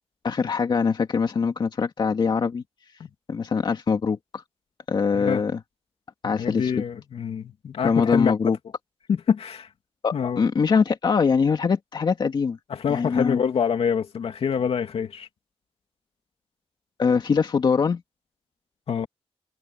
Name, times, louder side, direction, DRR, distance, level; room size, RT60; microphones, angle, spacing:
voice 1, 0.2-2.6 3.3-4.4 4.9-5.6 6.2-6.7 7.8-8.6 10.0-12.6 12.9-13.4 17.0-18.0, left 5 dB, 45° left, 2.4 m, -23 dB
voice 2, 6.2-8.5 9.1-9.7 10.1-10.4 12.7-15.3 18.9-19.1, left 7 dB, 70° left, 2.9 m, -26 dB
wide cardioid pair, 165°, 10 cm